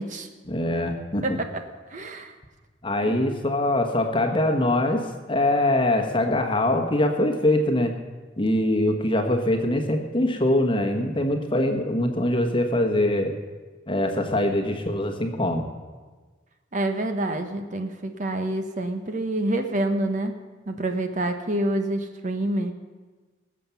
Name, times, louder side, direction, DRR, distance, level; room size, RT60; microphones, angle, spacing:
voice 1, 0.5-1.2 2.8-7.9 8.4-13.3 13.9-15.6, left 1 dB, 25° left, 4 dB, 1.1 m, -23 dB
voice 2, 1.2-1.6 1.9-2.3 3.0-3.2 16.7-20.3 20.7-22.7, right 1 dB, 40° right, 6 dB, 0.9 m, -27 dB
19.0 x 7.4 x 7.0 m, 1.4 s
head